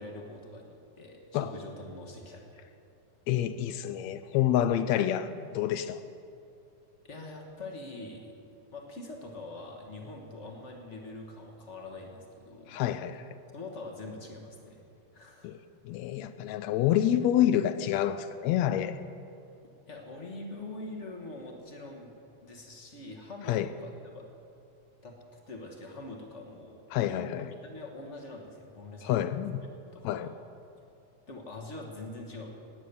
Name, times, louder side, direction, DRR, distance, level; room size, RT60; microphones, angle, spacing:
voice 1, 0.0-2.7 7.0-8.3 8.7-12.8 13.5-14.8 15.1-15.5 19.9-22.1 22.4-24.2 25.0-29.3 29.9-30.3 31.3-32.6, left 2 dB, 45° left, 1 dB, 0.9 m, -44 dB
voice 2, 3.3-6.0 12.7-13.2 15.4-15.6 15.8-19.0 23.5-23.7 26.9-27.5 29.0-29.6 30.0-30.3, left 11 dB, 80° left, 12 dB, 1.6 m, -28 dB
18.0 x 9.4 x 6.9 m, 2.6 s
omnidirectional pair, 3.6 m